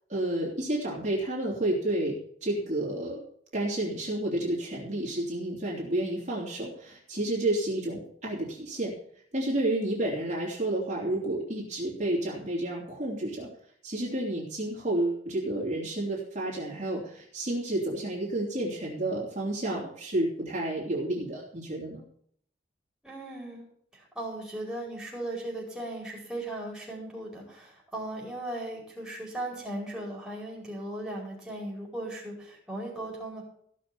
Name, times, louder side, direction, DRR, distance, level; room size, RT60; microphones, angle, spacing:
voice 1, 0.1-3.2 3.5-8.9 9.3-13.5 13.8-22.0, right 1 dB, 40° right, -4 dB, 3.2 m, -30 dB
voice 2, 23.0-23.6 23.9-33.4, right 1 dB, 5° right, -3 dB, 4.9 m, -37 dB
15.5 x 6.6 x 7.1 m, 0.64 s
head